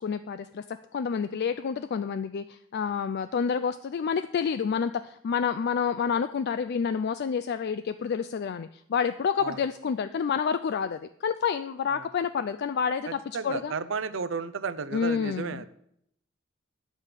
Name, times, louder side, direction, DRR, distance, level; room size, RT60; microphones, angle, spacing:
voice 1, 0.0-13.7 14.9-15.7, left 6 dB, 55° left, 11 dB, 0.3 m, -29 dB
voice 2, 13.3-15.7, right 5 dB, 65° right, 14 dB, 0.6 m, -33 dB
9.8 x 7.4 x 5.0 m, 0.73 s
head